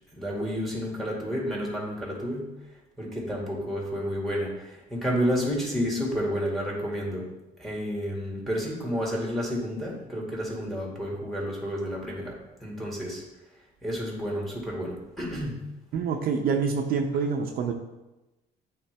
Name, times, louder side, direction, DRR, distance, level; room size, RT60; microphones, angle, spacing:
voice 1, 0.1-2.5 3.0-7.3 7.6-13.2 13.8-15.6, equal, ahead, -3 dB, 2.0 m, -30 dB
voice 2, 15.9-17.7, right 5 dB, 65° right, 3 dB, 0.6 m, -26 dB
8.6 x 3.8 x 3.4 m, 1.0 s
cardioid pair, 110°, 17 cm